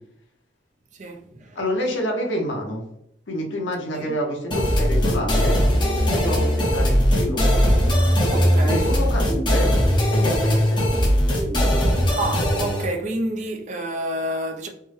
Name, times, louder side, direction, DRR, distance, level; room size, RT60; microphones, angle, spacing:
voice 1, 0.9-1.6 3.9-4.2 8.3-8.9 12.2-14.7, right 1 dB, 40° right, 0.4 m, -29 dB
voice 2, 1.5-2.8 3.3-5.6 6.1-7.4 8.6-9.7 10.1-10.8, equal, 90° left, 0.9 m, -28 dB
sound 1, 4.5-12.9, equal, 25° left, 0.6 m, -19 dB
3.4 x 2.1 x 3.1 m
head